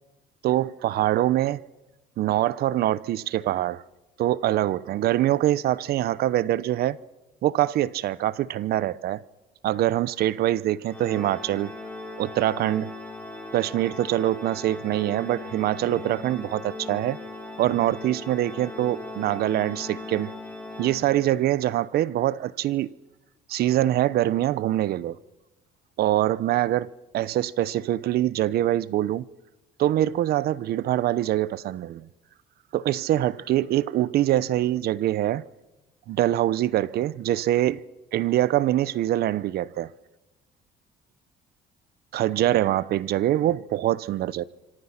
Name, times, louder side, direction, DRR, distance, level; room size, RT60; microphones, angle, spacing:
voice 1, 0.4-1.6 2.2-3.8 4.2-7.0 7.4-9.2 9.6-11.7 12.2-12.9 13.5-17.2 17.6-20.3 20.8-22.9 23.5-25.2 26.0-26.9 27.1-29.3 29.8-32.1 32.7-35.4 36.1-37.8 38.1-39.9 42.1-44.4, right 13 dB, 70° right, 0.9 m, -24 dB
Organ, 10.9-21.6, left 2 dB, 10° left, 5.5 m, -39 dB
26.5 x 25.5 x 5.9 m
cardioid pair, 110°, 17 cm